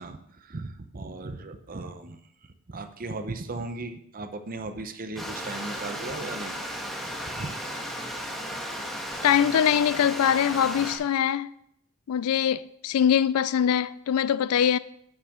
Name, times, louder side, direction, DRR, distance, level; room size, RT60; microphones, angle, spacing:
voice 1, 0.0-2.2 2.7-6.6 7.4-7.6, right 2 dB, 40° right, 0.7 m, -37 dB
Stream, 5.2-11.0, equal, ahead, 1.4 m, -35 dB
voice 2, 9.2-11.5 12.1-14.8, left 9 dB, 80° left, 0.4 m, -23 dB
10.5 x 7.2 x 3.7 m
head